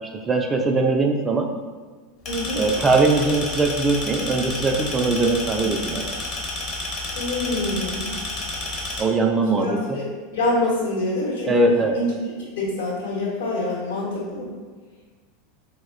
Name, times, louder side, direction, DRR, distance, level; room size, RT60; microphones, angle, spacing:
voice 1, 0.1-1.5 2.6-6.1 9.0-10.0 11.4-12.0, right 3 dB, 20° right, 2 dB, 0.3 m, -21 dB
sound 1, 2.2-9.0, left 2 dB, 40° left, 0.7 m, -30 dB
voice 2, 2.3-2.6 7.1-8.1 9.5-10.0 10.3-11.5 11.9-12.1 12.6-14.5, left 2 dB, 70° left, -5 dB, 0.9 m, -25 dB
4.0 x 2.1 x 2.4 m, 1.4 s
figure-of-eight pair, 85°, 0 cm